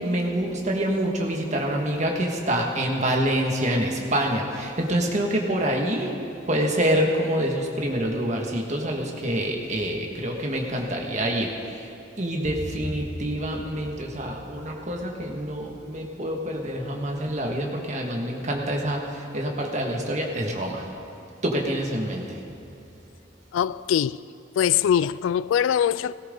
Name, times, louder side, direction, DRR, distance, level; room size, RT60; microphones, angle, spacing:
voice 1, 0.0-6.2 6.5-20.9 21.4-22.4, right 1 dB, 40° right, 1.7 m, -26 dB
voice 2, 23.5-24.2 24.6-26.1, left 9 dB, 85° left, 0.3 m, -22 dB
18.0 x 17.0 x 3.8 m
head